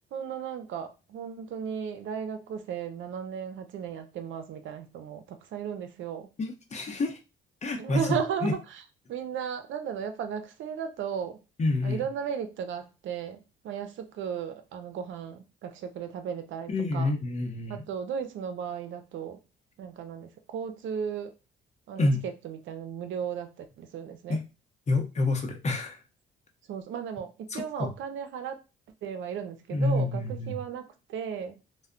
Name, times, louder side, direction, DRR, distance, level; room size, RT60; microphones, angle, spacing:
voice 1, 0.1-6.3 7.8-8.8 9.1-11.4 11.8-17.1 17.7-19.4 19.8-21.3 21.9-24.4 26.7-28.6 29.0-31.6, right 7 dB, 75° right, 0.5 m, -35 dB
voice 2, 6.4-7.2 7.6-8.5 11.6-12.1 16.7-17.8 22.0-22.2 24.3-24.4 24.9-26.0 27.5-27.9 29.7-30.6, left 2 dB, 35° left, 0.7 m, -28 dB
2.2 x 2.1 x 3.6 m
cardioid pair, 90°, 20 cm